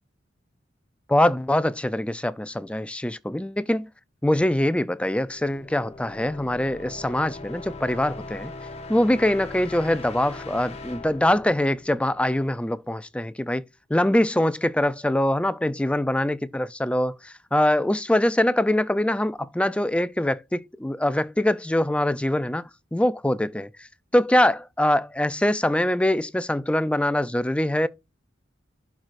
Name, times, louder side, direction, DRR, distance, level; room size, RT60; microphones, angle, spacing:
voice 1, 1.1-3.9 4.2-8.5 8.9-23.9 24.1-27.9, left 1 dB, 5° left, 0.4 m, -23 dB
sound 1, 5.1-12.8, left 3 dB, 35° left, 1.4 m, -40 dB
11.5 x 4.7 x 2.5 m
head